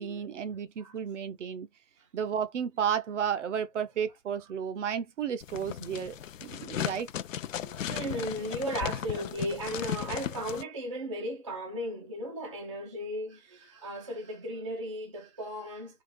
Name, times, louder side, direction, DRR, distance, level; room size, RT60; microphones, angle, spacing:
voice 1, 0.0-1.7 2.1-6.1 6.4-7.1, right 8 dB, 50° right, 0.7 m, -32 dB
sound 1, 5.4-10.6, left 10 dB, 55° left, 0.5 m, -36 dB
voice 2, 7.6-16.0, right 1 dB, 20° right, 0.4 m, -36 dB
3.8 x 2.4 x 4.2 m
hypercardioid pair, 150°, 48 cm